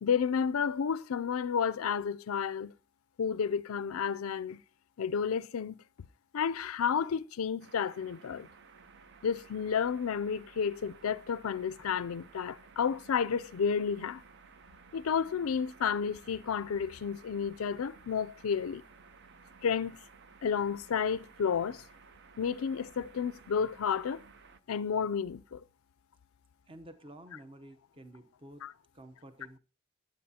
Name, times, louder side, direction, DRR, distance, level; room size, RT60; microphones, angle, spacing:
voice 1, 0.0-2.7 3.2-4.6 5.0-5.8 6.3-8.5 9.2-14.2 14.9-18.8 19.6-20.0 20.4-21.8 22.4-24.2 24.7-25.6 28.6-28.7, left 6 dB, 80° left, 0.4 m, -31 dB
sound 1, 7.6-24.6, right 5 dB, 55° right, 0.7 m, -56 dB
voice 2, 26.7-28.6 28.9-29.6, right 1 dB, 25° right, 0.8 m, -51 dB
15.5 x 10.0 x 2.8 m
head